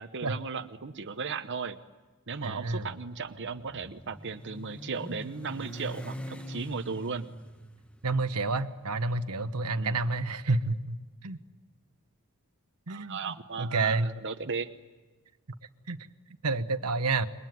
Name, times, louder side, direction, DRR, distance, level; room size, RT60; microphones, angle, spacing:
voice 1, 0.0-1.8 2.3-7.3 9.8-10.0 12.9-14.7, right 5 dB, 55° right, 7 dB, 0.9 m, -36 dB
voice 2, 2.4-2.9 8.0-11.4 12.9-13.2 13.6-14.1 15.9-16.1 16.4-17.3, right 3 dB, 90° right, 9 dB, 1.2 m, -29 dB
Motorcycle, 2.9-10.7, equal, 5° left, 1.1 m, -44 dB
27.5 x 22.5 x 9.4 m, 1.3 s
head